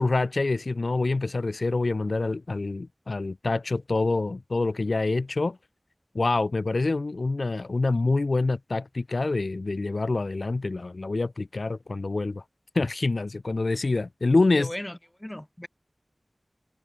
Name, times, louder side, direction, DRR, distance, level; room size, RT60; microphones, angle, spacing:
voice 1, 0.0-5.6 6.1-12.4 12.7-14.7, left 3 dB, 85° left, 0.5 m, -26 dB
voice 2, 14.5-15.7, left 1 dB, 20° left, 1.2 m, -37 dB
wide cardioid pair, 40°, 0 cm